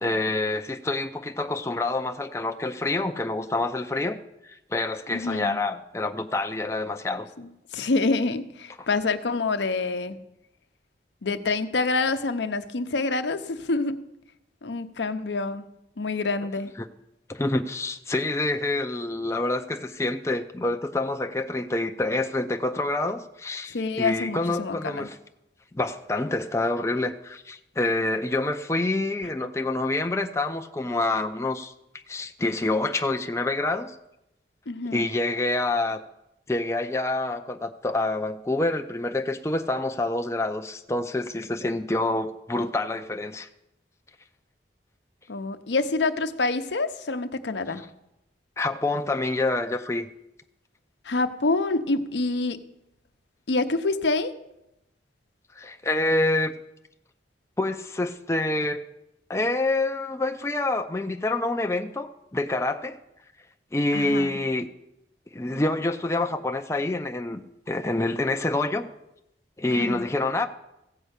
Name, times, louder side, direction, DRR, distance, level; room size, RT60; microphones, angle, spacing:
voice 1, 0.0-4.2 4.4-7.3 8.8-8.9 16.8-16.9 17.3-25.2 25.7-31.7 32.1-33.9 34.9-36.0 36.5-43.5 48.6-50.1 55.6-56.5 57.6-58.8 59.3-63.0 63.7-64.7 65.3-67.4 67.7-68.9 69.6-70.5, left 2 dB, 15° left, 6 dB, 0.4 m, -27 dB
voice 2, 5.1-5.6 7.4-10.2 11.2-14.0 14.6-15.6 16.0-16.7 23.7-25.1 34.7-35.1 45.3-47.8 51.0-52.6 53.5-54.3 63.9-64.4 69.7-70.0, left 3 dB, 80° left, 9 dB, 0.7 m, -27 dB
15.5 x 5.5 x 8.0 m, 0.86 s
head